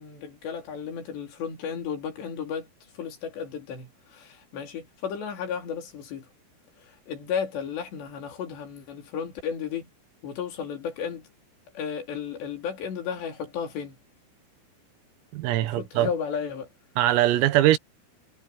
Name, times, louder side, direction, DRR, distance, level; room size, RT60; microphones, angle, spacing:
voice 1, 0.0-2.7 2.9-6.3 6.8-9.9 10.2-11.3 11.7-14.0 15.6-16.7, left 7 dB, 60° left, 5.1 m, -34 dB
voice 2, 15.3-16.1 17.0-17.8, right 14 dB, 90° right, 4.0 m, -21 dB
omnidirectional pair, 5.9 m